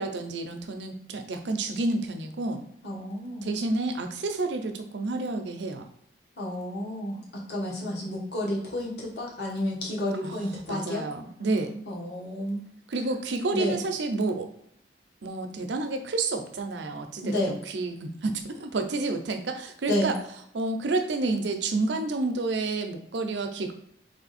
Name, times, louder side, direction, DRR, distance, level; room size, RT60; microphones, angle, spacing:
voice 1, 0.0-2.6 3.4-5.8 10.2-11.9 12.9-14.5 15.2-20.2 20.5-23.7, right 3 dB, 80° right, 6 dB, 0.6 m, -30 dB
voice 2, 2.8-3.5 6.4-11.1 11.8-12.6 13.5-13.8 17.2-17.5 19.9-20.1, left 1 dB, 65° left, -3 dB, 1.4 m, -31 dB
3.5 x 3.1 x 4.1 m, 0.71 s
head